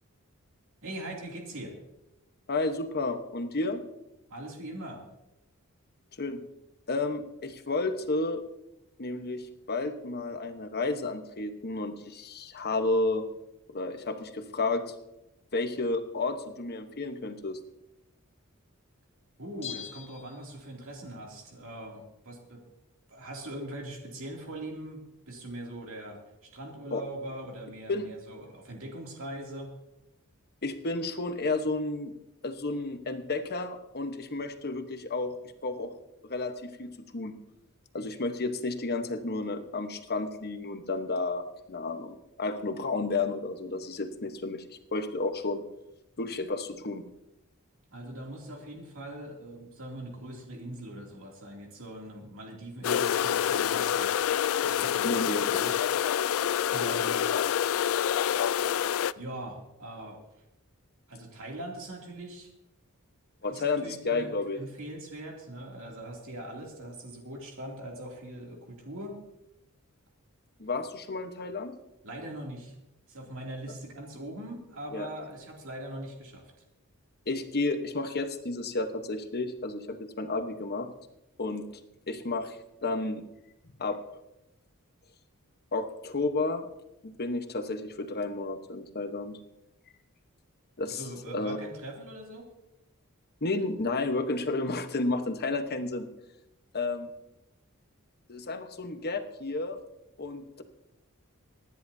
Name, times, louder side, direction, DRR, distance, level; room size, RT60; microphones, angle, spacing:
voice 1, 0.8-1.8 4.3-5.0 19.4-22.6 23.1-29.7 47.9-54.1 54.6-55.8 56.7-57.3 59.1-60.2 61.1-62.5 63.5-69.2 72.0-72.7 73.1-76.5 90.9-92.5, right 1 dB, 65° right, 0 dB, 2.7 m, -41 dB
voice 2, 2.5-3.8 6.2-6.4 6.9-8.4 9.0-13.3 13.7-14.9 15.5-17.6 26.9-27.0 27.9-28.1 30.6-32.1 32.4-35.3 35.6-35.9 36.2-37.3 37.9-45.6 46.2-47.0 55.0-55.5 63.4-64.6 70.6-71.7 74.9-75.1 77.3-80.9 81.4-81.6 82.1-83.2 83.8-84.0 85.7-86.7 87.0-89.4 90.8-91.0 91.3-91.6 93.4-96.1 96.7-97.1 98.3-99.8 100.2-100.6, left 3 dB, 45° left, 7 dB, 1.1 m, -31 dB
Bell, 19.6-21.0 21.3-21.4, left 9 dB, 30° left, 1.5 m, -43 dB
sound 1, 52.8-59.1, left 9 dB, 70° left, 0.3 m, -27 dB
26.0 x 10.5 x 2.7 m, 0.90 s
head